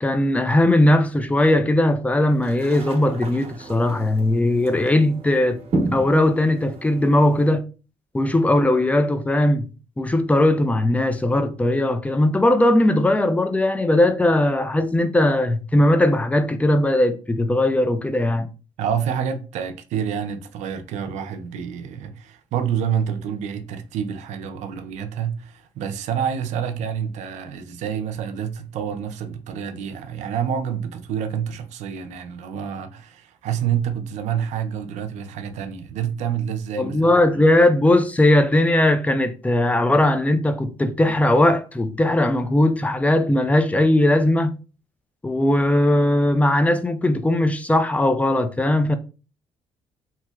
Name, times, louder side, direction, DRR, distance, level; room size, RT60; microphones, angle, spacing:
voice 1, 0.0-5.6 5.9-7.6 8.1-9.7 10.0-18.5 36.7-44.5 45.2-49.0, left 1 dB, 10° left, 0.4 m, -19 dB
sound 1, 2.3-7.5, right 2 dB, 55° right, 0.9 m, -32 dB
voice 2, 18.8-37.4, right 8 dB, 80° right, 0.5 m, -28 dB
3.1 x 2.8 x 2.3 m
cardioid pair, 90°, 12 cm